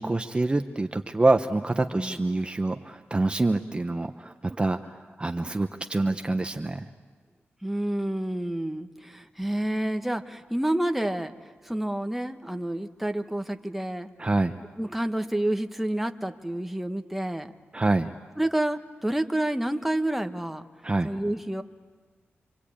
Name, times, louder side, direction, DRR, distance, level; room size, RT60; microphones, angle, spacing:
voice 1, 0.0-6.9 14.2-14.6 17.7-18.1 20.8-21.1, right 2 dB, 25° right, 7 dB, 0.9 m, -26 dB
voice 2, 7.6-11.3 11.6-14.1 14.8-17.5 18.4-20.6 21.0-21.6, right 1 dB, 5° right, 6 dB, 1.3 m, -29 dB
27.0 x 25.0 x 8.7 m, 1.5 s
wide cardioid pair, 90°, 4 cm